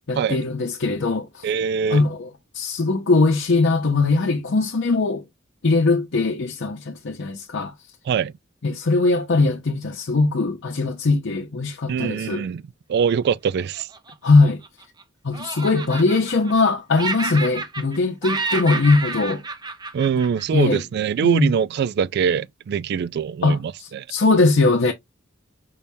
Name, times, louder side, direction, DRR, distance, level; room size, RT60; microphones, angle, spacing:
voice 1, 0.1-1.5 1.9-2.3 2.5-5.2 5.6-7.7 8.6-12.4 14.2-14.6 15.2-19.4 20.5-20.8 21.2-21.5 23.4-24.9, left 3 dB, 60° left, 0.7 m, -20 dB
voice 2, 1.4-2.0 8.1-8.3 11.9-12.6 12.9-13.9 19.9-24.1, right 7 dB, 55° right, 0.3 m, -23 dB
Laughter, 13.8-15.0 15.3-16.7 17.0-18.0 18.2-20.8, right 3 dB, 20° right, 0.6 m, -30 dB
5.5 x 3.4 x 2.7 m
head